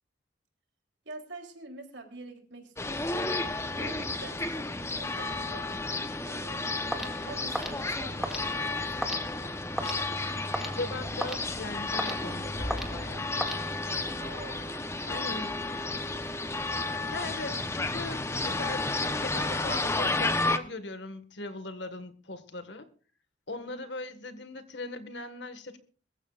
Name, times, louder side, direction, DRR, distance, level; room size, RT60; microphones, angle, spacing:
voice 1, 1.0-3.3 3.8-6.8 7.2-9.6 14.2-14.8 15.1-15.8 16.1-16.5 23.5-23.9, right 2 dB, 75° right, 3 dB, 3.4 m, -47 dB
sound 1, 2.8-20.6, left 2 dB, 15° left, 0.9 m, -32 dB
sound 2, 6.9-14.2, equal, ahead, 2.1 m, -38 dB
voice 2, 10.8-13.4 15.0-15.5 17.1-22.9 23.5-25.8, left 2 dB, 70° left, 9 dB, 1.7 m, -39 dB
sound 3, 12.5-14.0, equal, 85° left, 3.2 m, -40 dB
22.5 x 14.5 x 2.5 m, 0.40 s
head